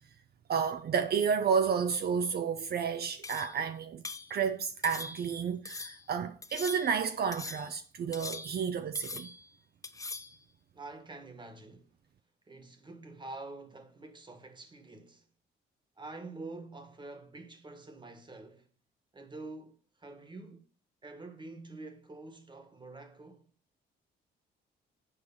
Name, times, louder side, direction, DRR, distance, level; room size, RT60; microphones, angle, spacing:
voice 1, 0.5-4.0 4.3-9.3, right 6 dB, 55° right, 0.6 m, -31 dB
sound 1, 3.2-3.6 4.0-4.3 4.8-5.4 5.7-6.0 6.4-7.0 7.3-7.8 8.1-8.7 9.0-9.5 9.8-10.4, left 3 dB, 15° left, 0.6 m, -42 dB
voice 2, 10.7-11.9 12.5-15.3 16.0-18.6 19.1-20.7 21.0-23.5, right 2 dB, 25° right, 1.5 m, -47 dB
7.2 x 4.7 x 7.0 m
cardioid pair, 90°, 20 cm